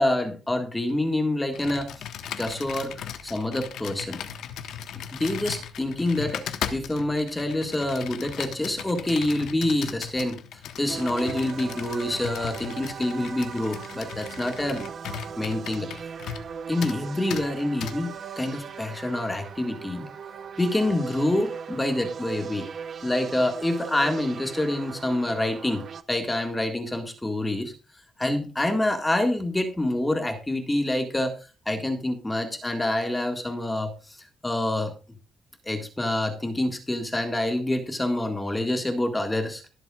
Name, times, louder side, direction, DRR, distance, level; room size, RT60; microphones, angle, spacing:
voice 1, 0.0-4.2 5.1-14.8 15.4-15.9 16.7-20.1 20.6-22.7 23.0-27.7 28.2-31.4 31.7-34.2 34.4-34.9 35.6-39.7, left 1 dB, 10° left, 5 dB, 1.8 m, -27 dB
Computer keyboard, 1.5-16.5 16.8-17.0 17.3-17.4 17.8-17.9, left 9 dB, 85° left, 1.3 m, -37 dB
sound 1, 10.9-26.0, right 6 dB, 45° right, 0.9 m, -39 dB
23.0 x 7.8 x 2.4 m, 0.32 s
cardioid pair, 140°, 0 cm